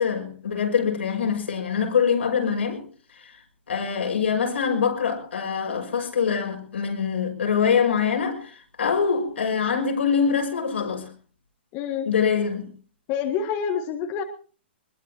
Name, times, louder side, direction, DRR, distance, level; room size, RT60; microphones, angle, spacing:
voice 1, 0.0-2.8 3.7-11.1 12.0-12.7, left 6 dB, 85° left, 6.0 m, -24 dB
voice 2, 11.7-12.1 13.1-14.2, left 7 dB, 35° left, 1.7 m, -27 dB
22.0 x 21.5 x 2.9 m
hypercardioid pair, 135°, 6 cm